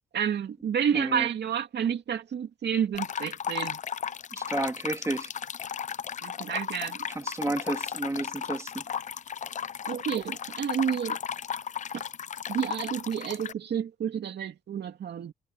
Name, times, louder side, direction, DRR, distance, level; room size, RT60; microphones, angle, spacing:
voice 1, 0.1-3.8 6.2-7.1 9.9-11.2 12.5-15.3, right 8 dB, 60° right, 2.6 m, -30 dB
voice 2, 0.9-1.3 4.3-5.3 7.1-8.8, right 2 dB, 15° right, 3.2 m, -31 dB
sound 1, 2.9-13.5, left 8 dB, 40° left, 0.6 m, -35 dB
cardioid pair, 90°, 20 cm